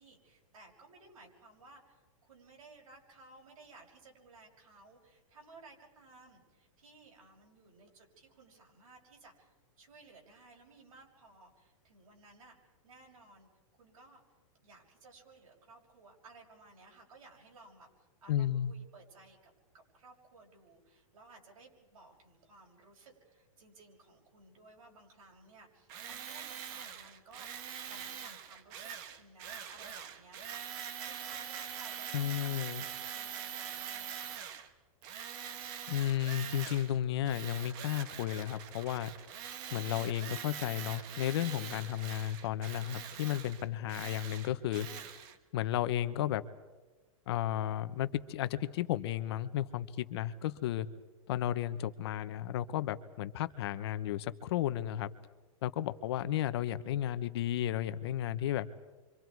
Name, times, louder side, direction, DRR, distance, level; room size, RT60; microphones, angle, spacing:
voice 1, 0.0-12.6 12.8-13.5 13.8-14.2 14.6-17.9 18.2-32.6 33.0-34.4, right 3 dB, 90° right, 0 dB, 6.2 m, -58 dB
voice 2, 18.3-18.7 32.1-32.8 35.9-39.1 39.7-44.9 45.5-46.4 47.3-50.9 51.3-55.1 55.6-58.7, left 12 dB, 50° left, 12 dB, 1.0 m, -33 dB
Tools, 25.9-34.7 35.0-37.0 37.2-45.4, right 9 dB, 35° right, 1.4 m, -44 dB
29.5 x 25.0 x 4.7 m, 1.2 s
supercardioid pair, 165°, 18 cm